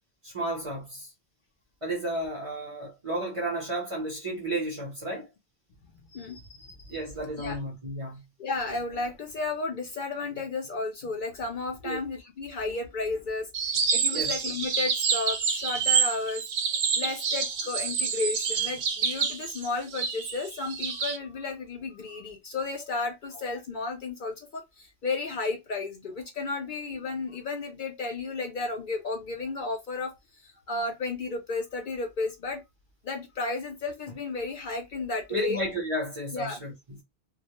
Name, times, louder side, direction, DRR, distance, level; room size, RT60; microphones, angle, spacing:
voice 1, 0.2-1.1 1.8-5.3 6.9-8.2 11.8-12.0 14.1-14.3 35.3-37.0, right 1 dB, 35° right, 0.6 m, -32 dB
voice 2, 6.1-7.0 7.4-7.6 8.4-16.4 17.0-30.1 30.4-32.6 33.0-35.6 36.3-36.6, left 3 dB, 55° left, 0.6 m, -33 dB
sound 1, 13.5-21.2, right 6 dB, 70° right, 0.8 m, -28 dB
2.2 x 2.0 x 2.8 m
omnidirectional pair, 1.1 m